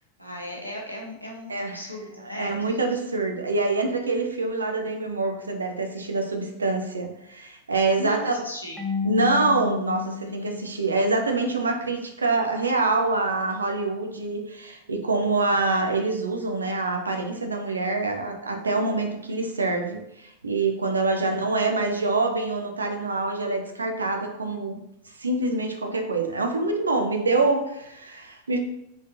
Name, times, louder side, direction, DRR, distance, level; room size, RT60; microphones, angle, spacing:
voice 1, 0.2-3.0 8.0-8.8 10.2-10.7, left 1 dB, 90° left, -2 dB, 0.9 m, -37 dB
voice 2, 2.2-8.4 9.0-24.8 25.2-28.6, right 3 dB, 75° right, 4 dB, 0.6 m, -25 dB
Marimba xylophone / Wood, 8.8-11.5, left 6 dB, ahead, 0.6 m, -33 dB
4.0 x 3.3 x 2.6 m, 0.80 s
figure-of-eight pair, 90°, 0 cm